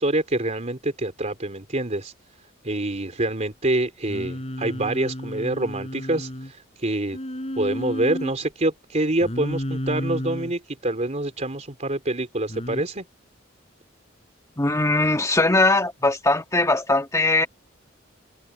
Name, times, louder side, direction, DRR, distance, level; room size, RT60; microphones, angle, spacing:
voice 1, 0.0-2.1 2.6-7.2 7.6-13.0, right 1 dB, 35° right, 3.6 m, -26 dB
Singing, 4.1-6.5 7.1-8.3 9.2-10.5 12.5-12.8, equal, 35° left, 4.7 m, -31 dB
voice 2, 14.6-17.5, left 2 dB, 15° left, 1.8 m, -20 dB
head